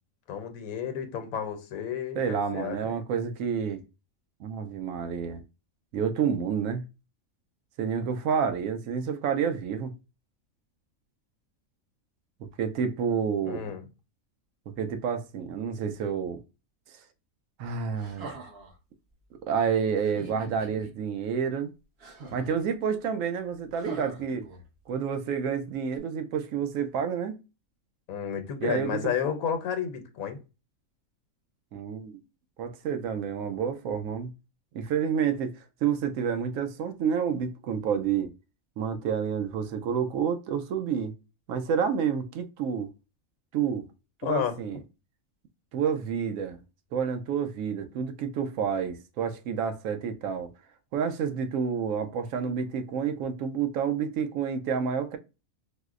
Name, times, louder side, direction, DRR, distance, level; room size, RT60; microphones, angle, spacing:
voice 1, 0.3-2.9 13.5-13.8 28.1-30.4 44.2-44.5, left 8 dB, 85° left, 1.1 m, -31 dB
voice 2, 2.2-3.8 4.4-5.4 5.9-6.8 7.8-9.9 12.6-13.6 14.8-16.4 17.6-18.3 19.5-21.7 22.3-24.5 24.9-27.4 28.6-29.1 31.7-32.2 32.6-34.3 34.7-35.5 35.8-38.3 38.8-41.1 41.5-42.9 43.5-43.8 44.2-44.8 45.7-46.6 46.9-50.5 50.9-55.2, right 7 dB, 75° right, 1.0 m, -29 dB
sound 1, 18.0-18.8 20.0-20.9 22.0-22.6 23.7-24.9 25.9-26.0, right 3 dB, 50° right, 1.0 m, -44 dB
4.7 x 2.0 x 2.4 m
omnidirectional pair, 1.5 m